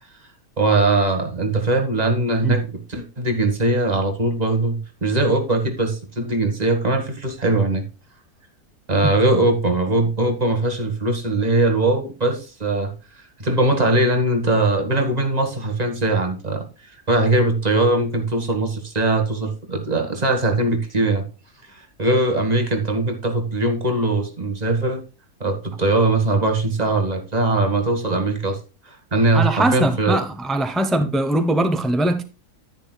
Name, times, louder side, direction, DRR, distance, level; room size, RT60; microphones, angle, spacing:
voice 1, 0.6-7.8 8.9-12.9 13.4-16.7 17.1-21.2 21.8-25.0 25.4-28.6 29.1-30.2, right 2 dB, 25° right, 1.7 m, -20 dB
voice 2, 29.3-32.2, right 1 dB, ahead, 0.3 m, -21 dB
10.5 x 10.0 x 2.3 m
omnidirectional pair, 1.6 m